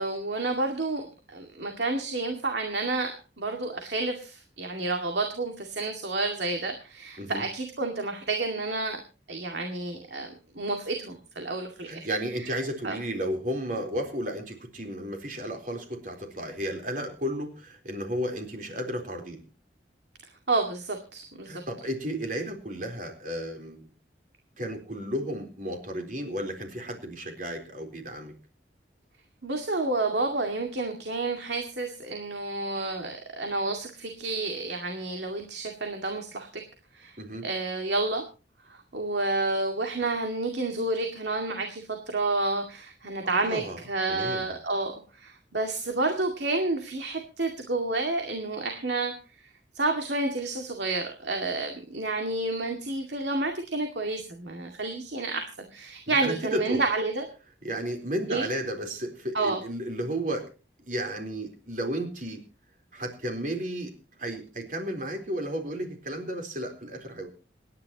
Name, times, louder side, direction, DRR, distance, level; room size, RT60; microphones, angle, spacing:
voice 1, 0.0-3.1 3.4-9.0 9.3-12.1 12.8-12.9 20.5-21.6 29.4-36.6 36.9-37.2 37.4-38.2 38.9-44.9 45.2-49.1 49.8-55.5 55.7-57.2 58.3-58.4 59.3-59.6, right 2 dB, 75° right, 3 dB, 2.2 m, -30 dB
voice 2, 11.8-19.4 21.5-23.8 24.6-28.3 37.2-37.5 43.3-43.8 44.1-44.5 56.1-56.8 57.6-60.5 60.8-62.4 62.9-63.9 64.2-67.3, right 1 dB, 45° right, 4 dB, 4.0 m, -33 dB
27.5 x 10.5 x 3.0 m, 0.34 s
head